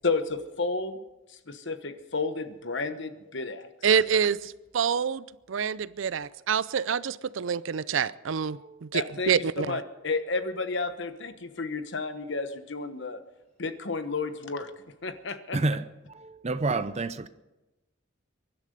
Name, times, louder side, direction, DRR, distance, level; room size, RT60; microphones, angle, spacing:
voice 1, 0.0-1.0 1.5-3.7 8.9-9.3 9.6-13.2 13.6-14.7 15.0-15.6, left 3 dB, 60° left, 1.2 m, -31 dB
voice 2, 3.8-9.8, right 7 dB, 70° right, 0.5 m, -27 dB
voice 3, 8.6-8.9 15.5-15.8 16.1-17.3, right 3 dB, 35° right, 0.7 m, -29 dB
23.5 x 11.5 x 5.2 m
head